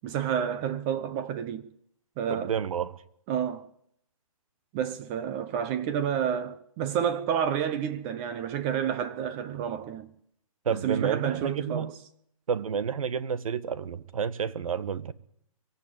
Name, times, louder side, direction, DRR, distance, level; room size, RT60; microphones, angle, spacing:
voice 1, 0.0-1.7 2.2-2.6 3.3-3.7 4.7-10.1 10.7-12.0, right 8 dB, 25° right, 0.9 m, -30 dB
voice 2, 2.3-2.9 10.6-11.9 12.5-15.1, right 7 dB, 70° right, 1.6 m, -30 dB
24.5 x 14.5 x 9.1 m
hypercardioid pair, 155°, 18 cm